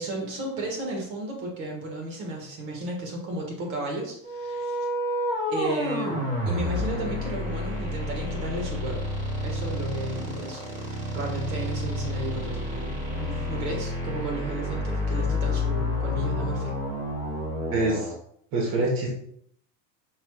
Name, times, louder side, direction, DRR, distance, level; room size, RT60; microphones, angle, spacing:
voice 1, 0.0-4.9 5.5-9.1 9.4-10.6 11.1-16.7, right 2 dB, 80° right, 0 dB, 1.6 m, -34 dB
sound 1, 4.2-18.1, left 1 dB, 20° right, 1.3 m, -29 dB
voice 2, 17.7-18.1 18.5-19.1, right 2 dB, 55° right, -2 dB, 1.2 m, -25 dB
5.5 x 3.2 x 2.2 m, 0.69 s
supercardioid pair, 150°, 40 cm